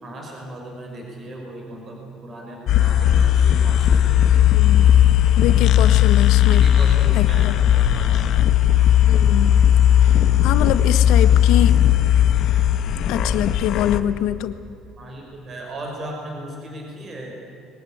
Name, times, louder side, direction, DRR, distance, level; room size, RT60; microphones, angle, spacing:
voice 1, 0.0-4.3 6.5-8.3 15.0-17.3, right 1 dB, 30° right, 0 dB, 4.9 m, -36 dB
sound 1, 2.7-14.0, left 10 dB, 50° left, 1.2 m, -16 dB
voice 2, 4.5-4.9 5.4-6.7 7.2-7.5 9.0-9.6 10.0-11.8 13.1-14.6, left 12 dB, 75° left, 12 dB, 1.2 m, -25 dB
22.5 x 19.5 x 8.6 m, 2.8 s
cardioid pair, 170°, 0 cm